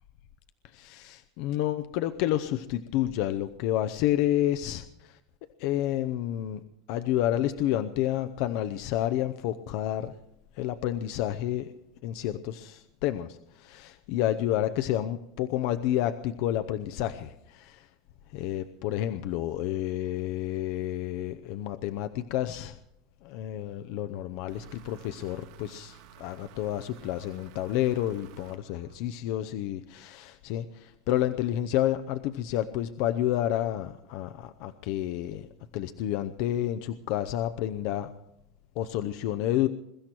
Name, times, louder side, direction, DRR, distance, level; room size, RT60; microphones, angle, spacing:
voice 1, 0.6-5.2 5.6-6.6 6.9-10.1 10.5-11.7 12.0-17.9 18.3-22.8 23.2-35.5 35.7-38.1 38.8-39.7, left 12 dB, 55° left, 10 dB, 0.7 m, -30 dB
sound 1, 24.5-29.4, right 8 dB, 85° right, 3.4 m, -52 dB
22.5 x 13.5 x 4.5 m, 0.81 s
supercardioid pair, 160°, 2 cm